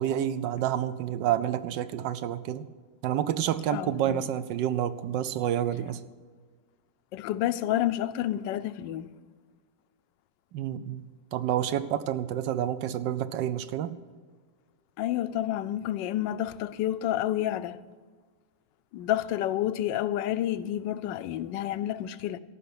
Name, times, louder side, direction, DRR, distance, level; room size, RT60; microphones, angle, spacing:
voice 1, 0.0-2.7 3.0-6.0 10.5-14.0, right 11 dB, 85° right, 1.3 m, -29 dB
voice 2, 3.7-4.2 7.1-9.1 15.0-17.8 18.9-22.4, left 12 dB, 85° left, 1.3 m, -29 dB
14.0 x 5.8 x 9.5 m
omnidirectional pair, 1.9 m